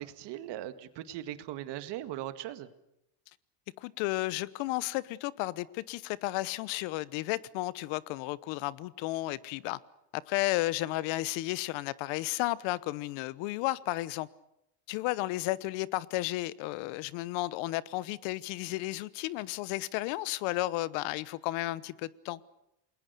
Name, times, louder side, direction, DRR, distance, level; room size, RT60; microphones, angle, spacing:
voice 1, 0.0-2.7, right 13 dB, 55° right, 2.0 m, -39 dB
voice 2, 3.8-9.8 10.3-14.3 14.9-22.4, left 18 dB, 70° left, 1.1 m, -33 dB
29.0 x 20.5 x 6.9 m
cardioid pair, 130°, 48 cm